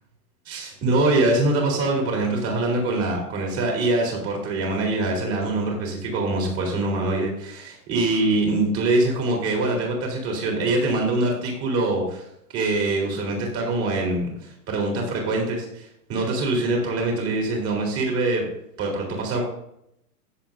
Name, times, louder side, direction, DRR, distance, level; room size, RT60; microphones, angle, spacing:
voice 1, 0.5-12.3 12.5-18.4 18.8-19.4, right 2 dB, 30° right, 0 dB, 3.6 m, -24 dB
16.5 x 7.1 x 2.6 m, 0.76 s
hypercardioid pair, 150°, 48 cm